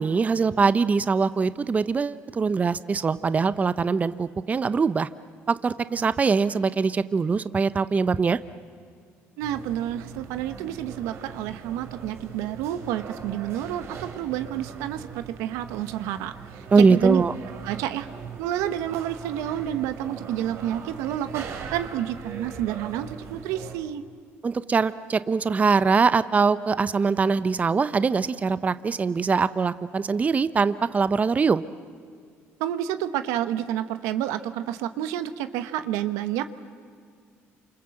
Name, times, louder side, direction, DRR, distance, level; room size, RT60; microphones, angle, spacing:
voice 1, 0.0-5.1 5.5-8.4 16.7-17.3 24.4-31.6, right 5 dB, 30° right, 14 dB, 0.7 m, -22 dB
sound 1, 9.4-23.8, right 6 dB, 60° right, 3.4 m, -40 dB
voice 2, 9.4-16.3 16.8-17.2 17.6-18.1 18.4-24.0 32.6-36.4, right 11 dB, 90° right, 11 dB, 1.1 m, -29 dB
28.5 x 26.5 x 7.7 m, 2.2 s
cardioid pair, 95°, 5 cm